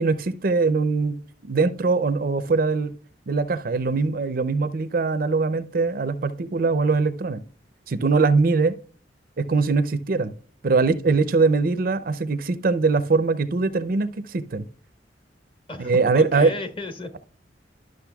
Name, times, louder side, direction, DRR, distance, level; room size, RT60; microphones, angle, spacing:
voice 1, 0.0-2.9 3.3-7.4 7.9-8.8 9.4-10.3 10.6-14.7 15.8-16.5, right 4 dB, 55° right, 0.5 m, -22 dB
voice 2, 15.7-17.2, left 2 dB, 30° left, 1.2 m, -34 dB
12.0 x 6.4 x 2.3 m
head